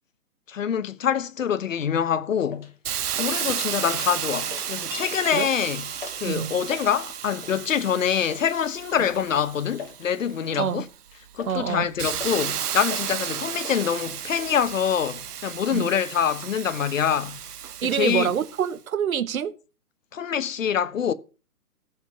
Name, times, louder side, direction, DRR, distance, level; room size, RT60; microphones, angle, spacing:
voice 1, 0.5-2.7 3.2-5.8 6.2-10.9 11.3-17.4 17.8-18.3 20.1-21.1, left 8 dB, 60° left, 1.1 m, -25 dB
sound 1, 2.5-2.7 3.2-3.5 3.8-4.0 4.4-5.0 5.3-5.5 6.0-6.3 6.6-6.9 7.4-7.7 8.3-8.5 9.1-9.3 9.5-10.0 10.5-10.7 11.1-11.7 12.2-12.5 12.9-13.1 13.3-13.9, left 6 dB, 40° left, 2.3 m, -40 dB
Hiss, 2.9-10.4 10.9-18.7, right 9 dB, 90° right, 0.9 m, -33 dB
sound 2, 4.9-10.3, equal, 5° right, 3.2 m, -46 dB
voice 2, 11.5-11.9 15.7-15.9 17.8-19.5, right 8 dB, 70° right, 1.0 m, -26 dB
14.5 x 5.4 x 6.8 m
hypercardioid pair, 175°, 45 cm